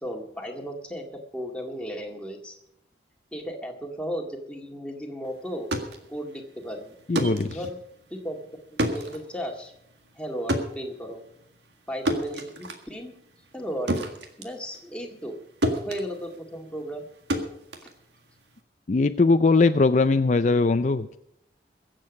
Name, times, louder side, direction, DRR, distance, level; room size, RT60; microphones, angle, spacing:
voice 1, 0.0-2.6 3.3-5.7 6.1-7.0 7.5-7.8 8.1-8.4 8.9-9.7 10.1-11.2 11.9-13.1 13.5-14.0 14.4-15.4 15.9-17.1, equal, 5° left, 1 dB, 1.9 m, -35 dB
sound 1, 5.5-15.4 15.6-18.6, equal, 80° right, 1.8 m, -32 dB
voice 2, 7.1-7.6 18.9-21.2, left 3 dB, 40° left, 9 dB, 0.4 m, -20 dB
22.5 x 7.7 x 5.3 m, 0.78 s
head